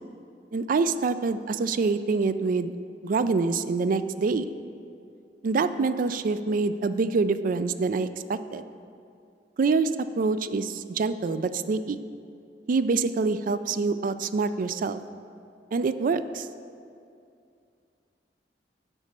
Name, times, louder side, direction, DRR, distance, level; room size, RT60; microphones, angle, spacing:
voice 1, 0.5-2.7 3.0-4.5 5.4-8.6 9.6-12.0 12.7-15.0 15.7-16.5, right 4 dB, 50° right, 13 dB, 0.3 m, -26 dB
8.1 x 5.3 x 7.3 m, 2.5 s
head